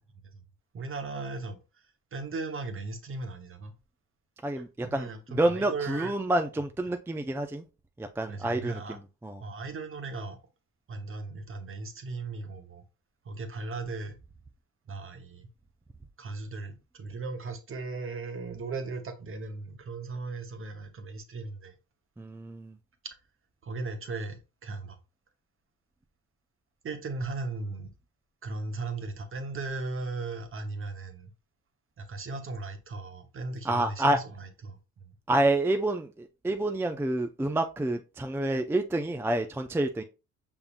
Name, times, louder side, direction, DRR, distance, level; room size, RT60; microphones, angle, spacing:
voice 1, 0.7-1.6 2.1-3.7 4.6-6.1 8.3-9.0 9.4-10.4 10.9-12.8 13.2-14.1 14.9-15.5 16.2-21.7 23.6-25.0 26.8-27.9 28.4-31.3 32.0-34.8, right 3 dB, 45° right, 1.1 m, -37 dB
voice 2, 4.4-7.6 8.0-9.4 22.2-22.8 33.6-34.2 35.3-40.0, right 1 dB, 10° right, 0.4 m, -28 dB
5.7 x 3.6 x 2.4 m
cardioid pair, 90°, 30 cm